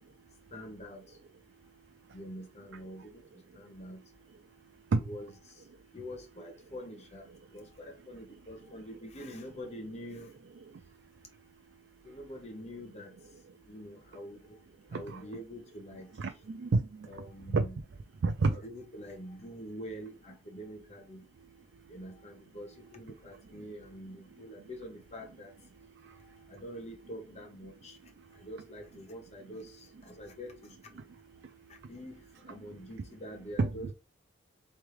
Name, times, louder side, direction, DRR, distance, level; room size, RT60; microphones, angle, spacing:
voice 1, 0.5-1.2 2.1-3.2 3.5-4.0 5.0-5.6 5.9-10.3 12.0-13.1 13.7-14.6 14.9-16.1 17.1-17.8 18.6-21.2 21.9-25.5 26.5-28.0 28.3-30.8 31.9-33.9, equal, 35° left, 1.0 m, -45 dB
voice 2, 14.9-15.3 16.2-17.1 17.5-17.6 18.2-18.6 33.6-33.9, right 3 dB, 70° right, 0.4 m, -29 dB
3.5 x 3.3 x 3.2 m
head